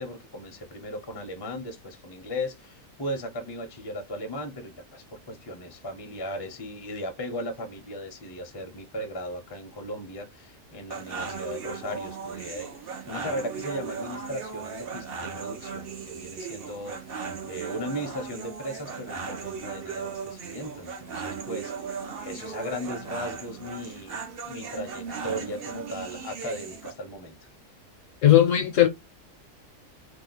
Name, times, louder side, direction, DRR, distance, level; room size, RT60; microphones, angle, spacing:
voice 1, 0.0-12.7 13.1-27.5, equal, 25° left, 0.5 m, -37 dB
sound 1, 10.9-26.9, right 5 dB, 50° right, 0.7 m, -37 dB
voice 2, 28.2-28.9, left 12 dB, 65° left, 0.9 m, -17 dB
2.8 x 2.0 x 3.9 m
omnidirectional pair, 1.6 m